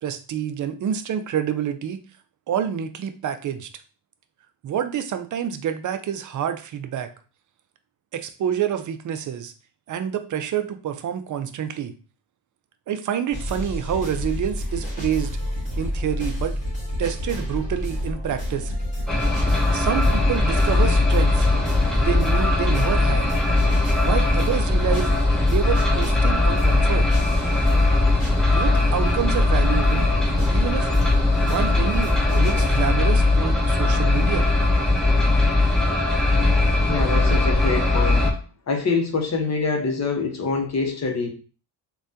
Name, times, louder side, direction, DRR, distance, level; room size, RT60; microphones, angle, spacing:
voice 1, 0.0-2.0 2.5-3.7 4.6-7.1 8.1-9.5 9.9-11.9 12.9-15.4 15.8-16.6 17.0-18.7 19.7-21.5 21.9-23.3 24.1-25.1 25.4-27.1 28.4-30.1 30.5-30.9 31.4-34.5, right 9 dB, 45° right, 9 dB, 0.4 m, -27 dB
sound 1, 13.3-32.9, left 1 dB, 15° left, 1.4 m, -29 dB
sound 2, 19.1-38.3, left 2 dB, ahead, 0.7 m, -20 dB
voice 2, 36.9-38.3 38.7-41.3, left 4 dB, 35° left, 3 dB, 0.8 m, -25 dB
3.3 x 2.3 x 2.6 m, 0.37 s
cardioid pair, 95°, 45 cm